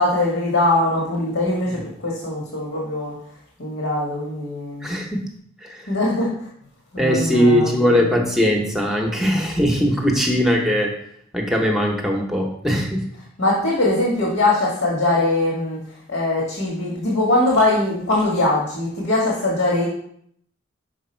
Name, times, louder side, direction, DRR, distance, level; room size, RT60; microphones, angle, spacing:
voice 1, 0.0-3.1 3.6-4.9 5.9-6.3 6.9-8.0 13.4-15.8 16.1-19.9, left 2 dB, 75° left, -3 dB, 1.5 m, -21 dB
voice 2, 4.8-5.2 5.6-5.9 7.0-11.0 11.3-13.1, equal, ahead, 1 dB, 0.8 m, -20 dB
6.0 x 4.7 x 4.4 m, 0.66 s
head